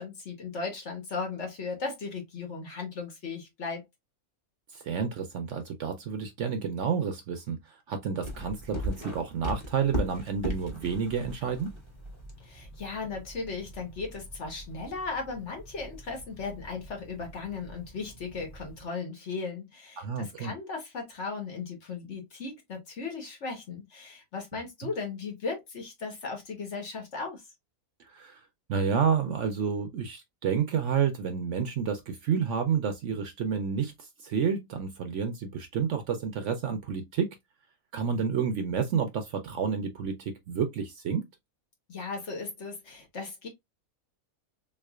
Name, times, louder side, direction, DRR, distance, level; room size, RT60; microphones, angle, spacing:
voice 1, 0.0-3.8 12.4-27.4 41.9-43.5, left 4 dB, 50° left, 1.5 m, -37 dB
voice 2, 4.7-11.8 20.0-20.5 28.0-28.4 28.7-37.4 37.9-41.2, right 6 dB, 65° right, 0.8 m, -30 dB
sound 1, 8.2-18.8, equal, 20° left, 1.2 m, -40 dB
3.5 x 3.2 x 2.3 m
omnidirectional pair, 1.6 m